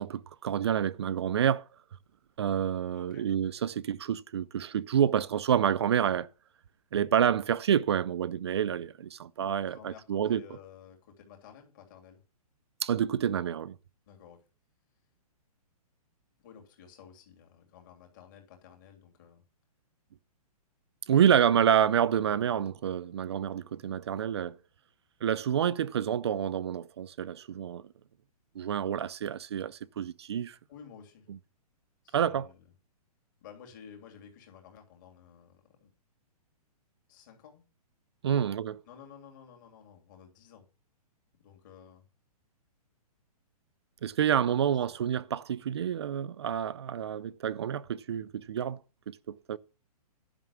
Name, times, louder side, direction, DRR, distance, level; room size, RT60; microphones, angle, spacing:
voice 1, 0.0-1.6 2.4-6.3 6.9-10.4 12.8-13.8 21.1-24.6 25.2-27.8 28.6-30.6 32.1-32.5 38.2-38.7 44.0-48.8 49.1-49.2 49.5-49.6, right 9 dB, 45° right, 0.5 m, -28 dB
voice 2, 2.9-3.3 9.4-12.2 14.1-14.4 16.4-19.4 22.2-22.7 30.7-31.3 32.0-32.7 33.4-35.9 37.1-37.6 38.2-38.5 38.9-40.6 41.4-42.0 44.4-44.9, left 7 dB, 30° left, 2.9 m, -53 dB
11.0 x 6.0 x 7.0 m
hypercardioid pair, 175°, 20 cm